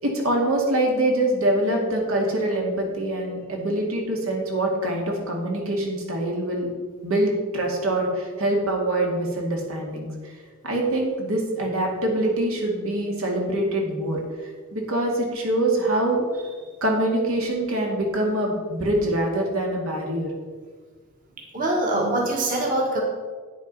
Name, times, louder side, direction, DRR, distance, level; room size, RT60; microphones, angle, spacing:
voice 1, 0.0-6.7 7.0-10.1 10.6-16.2 16.8-20.3, right 1 dB, 80° right, 0 dB, 2.2 m, -24 dB
voice 2, 21.5-23.0, right 1 dB, 40° right, -2 dB, 1.7 m, -23 dB
9.5 x 7.2 x 5.4 m, 1.5 s
head